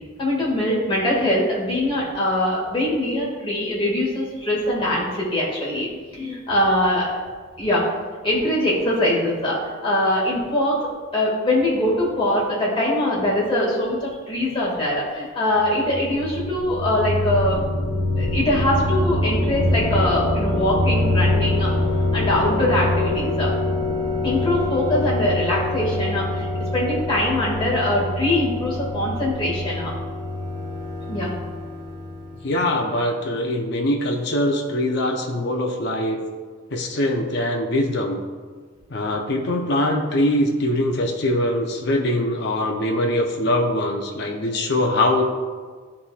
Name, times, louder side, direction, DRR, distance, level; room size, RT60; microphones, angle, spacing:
voice 1, 0.2-5.9 6.1-7.1 7.6-7.8 8.2-10.8 11.1-17.6 18.2-23.5 24.2-29.9 31.1-31.3, left 1 dB, 25° left, -5 dB, 1.9 m, -22 dB
sound 1, 15.6-32.3, left 2 dB, 25° right, 1.6 m, -24 dB
voice 2, 32.4-36.2 36.7-38.2 38.9-45.2, left 1 dB, 55° left, 1 dB, 0.7 m, -22 dB
12.5 x 4.3 x 2.4 m, 1.5 s
head